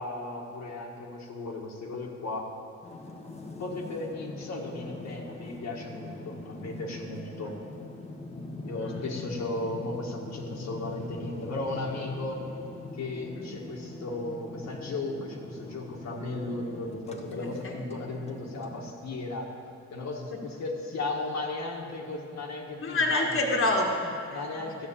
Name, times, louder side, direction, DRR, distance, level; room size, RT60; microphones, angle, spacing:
voice 1, 0.0-2.5 3.4-7.6 8.6-12.5 12.9-19.5 19.9-23.3 24.3-24.9, left 2 dB, 65° left, -2 dB, 1.8 m, -36 dB
sound 1, 2.8-18.9, left 2 dB, 20° left, 1.3 m, -42 dB
voice 2, 8.8-9.1 13.4-13.5 17.1-17.7 20.3-20.4 22.8-24.4, left 2 dB, 45° left, 0 dB, 1.8 m, -28 dB
13.0 x 6.3 x 8.5 m, 2.7 s
cardioid pair, 90°, 30 cm